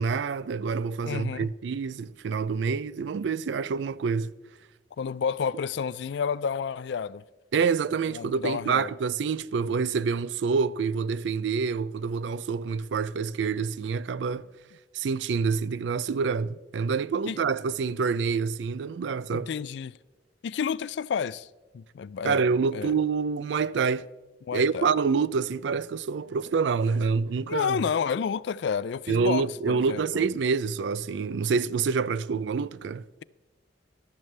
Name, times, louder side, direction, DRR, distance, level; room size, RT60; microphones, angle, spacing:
voice 1, 0.0-4.3 7.5-14.5 14.9-19.5 22.2-24.1 24.5-27.8 29.1-33.0, right 5 dB, 75° right, 0.4 m, -27 dB
voice 2, 1.1-1.5 5.0-7.2 8.1-8.9 17.3-17.4 19.3-20.0 20.4-21.5 21.7-22.4 22.7-22.9 24.5-24.9 27.5-30.2, left 6 dB, 65° left, 0.3 m, -30 dB
13.5 x 12.0 x 3.3 m
head